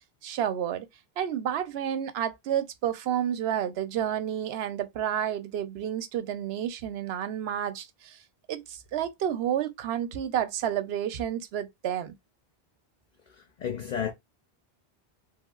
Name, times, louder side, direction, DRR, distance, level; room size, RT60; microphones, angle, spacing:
voice 1, 0.2-0.9 1.2-8.2 8.5-12.1, right 10 dB, 90° right, 0.8 m, -30 dB
voice 2, 13.3-14.1, left 8 dB, 50° left, 0.6 m, -33 dB
3.2 x 2.8 x 2.3 m
omnidirectional pair, 1.0 m